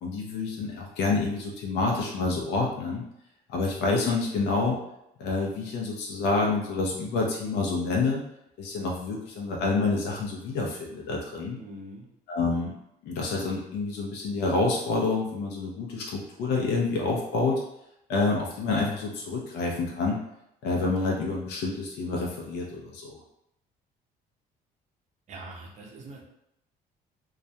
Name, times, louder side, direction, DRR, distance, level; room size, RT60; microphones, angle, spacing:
voice 1, 0.0-3.0 3.5-4.8 5.2-8.2 8.6-11.6 12.3-12.7 13.0-17.6 18.1-20.2 20.6-23.2, left 3 dB, 80° left, -1 dB, 0.5 m, -28 dB
voice 2, 11.6-12.1 25.3-26.2, right 2 dB, 45° right, -1 dB, 0.6 m, -43 dB
2.3 x 2.1 x 2.7 m, 0.81 s
cardioid pair, 110°, 17 cm